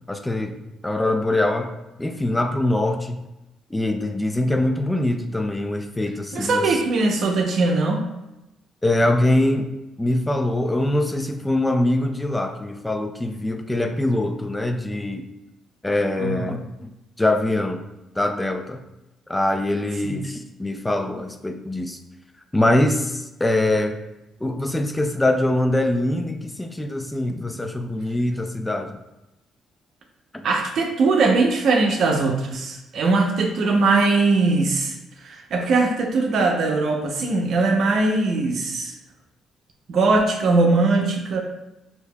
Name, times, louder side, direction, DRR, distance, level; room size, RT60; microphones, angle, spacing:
voice 1, 0.1-0.6 0.8-1.7 2.0-3.2 3.7-6.8 8.8-9.7 10.0-15.3 15.8-17.8 18.2-18.8 19.3-22.0 22.5-24.0 24.4-29.0 30.3-30.4, left 1 dB, 15° left, 6 dB, 0.3 m, -23 dB
voice 2, 6.3-8.0 16.2-16.5 20.0-20.2 30.4-35.0 35.2-38.9 39.9-41.4, right 3 dB, 65° right, 2 dB, 0.6 m, -20 dB
4.6 x 2.7 x 2.2 m, 0.97 s
cardioid pair, 90°, 0 cm